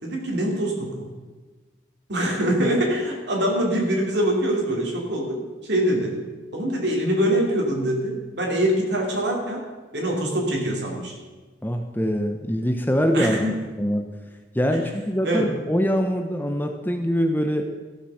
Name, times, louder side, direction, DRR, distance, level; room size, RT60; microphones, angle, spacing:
voice 1, 0.0-1.1 2.1-6.2 6.5-9.6 9.9-11.2 13.1-13.6 15.2-15.5, right 1 dB, 60° right, -1 dB, 2.8 m, -24 dB
voice 2, 11.6-13.4 13.8-14.1 14.5-17.6, equal, 10° left, 5 dB, 0.7 m, -23 dB
14.5 x 6.8 x 6.3 m, 1.3 s
head